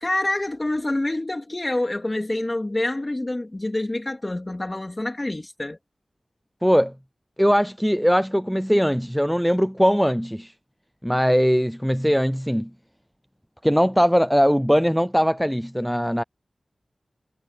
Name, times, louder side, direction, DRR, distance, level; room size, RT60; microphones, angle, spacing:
voice 1, 0.0-5.8, left 1 dB, 25° left, 3.2 m, -27 dB
voice 2, 6.6-6.9 7.4-10.5 11.0-12.7 13.6-16.2, equal, ahead, 0.5 m, -20 dB
wide cardioid pair, 90°, 0 cm